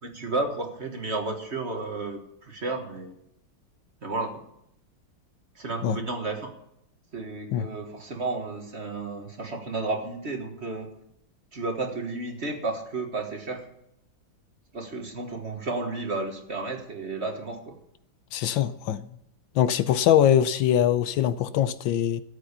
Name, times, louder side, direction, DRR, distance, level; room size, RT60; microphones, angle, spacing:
voice 1, 0.0-3.1 4.0-4.4 5.5-6.5 7.1-10.9 11.5-13.7 14.7-17.8, right 3 dB, 35° right, 4 dB, 1.6 m, -32 dB
voice 2, 18.3-19.0 19.6-22.2, left 10 dB, 80° left, 14 dB, 1.4 m, -22 dB
13.0 x 8.7 x 6.7 m, 0.78 s
omnidirectional pair, 2.1 m